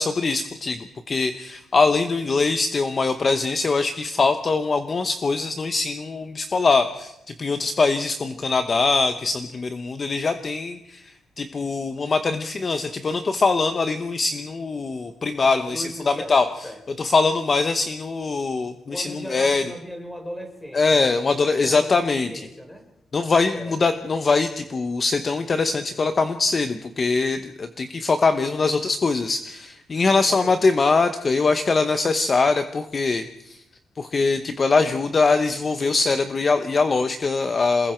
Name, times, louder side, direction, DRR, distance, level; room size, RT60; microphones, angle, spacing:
voice 1, 0.0-16.5 17.0-19.6 20.7-22.3 23.1-33.6 34.0-37.9, left 4 dB, 30° left, 8 dB, 1.0 m, -22 dB
voice 2, 15.4-17.0 18.9-22.9 23.5-23.8 30.2-30.5, equal, 10° left, 4 dB, 3.9 m, -38 dB
27.5 x 21.0 x 4.5 m, 0.86 s
wide cardioid pair, 150°, 0 cm